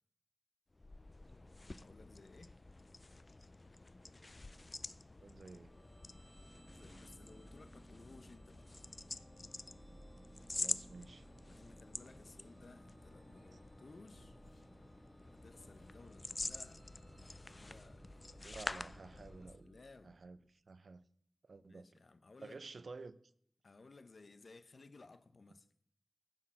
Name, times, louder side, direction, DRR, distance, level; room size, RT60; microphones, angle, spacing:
sound 1, 0.7-19.6, left 2 dB, 35° left, 0.4 m, -48 dB
voice 1, 1.7-2.6 6.7-8.7 11.4-14.4 15.3-18.1 19.4-20.2 21.7-22.6 23.6-25.7, left 3 dB, 65° left, 0.7 m, -59 dB
voice 2, 5.2-5.7 10.5-11.3 13.5-13.6 18.4-19.7 20.0-21.1 21.4-21.9 22.4-23.2, right 3 dB, 75° right, 0.4 m, -52 dB
sound 2, 5.6-20.4, right 1 dB, 20° right, 1.3 m, -60 dB
sound 3, 12.0-12.5 13.2-13.6 14.3-14.7 15.5-16.1 16.8-17.5 18.1-18.8 19.2-19.6, left 2 dB, 80° left, 1.8 m, -72 dB
9.6 x 4.5 x 7.4 m
wide cardioid pair, 90°, 0 cm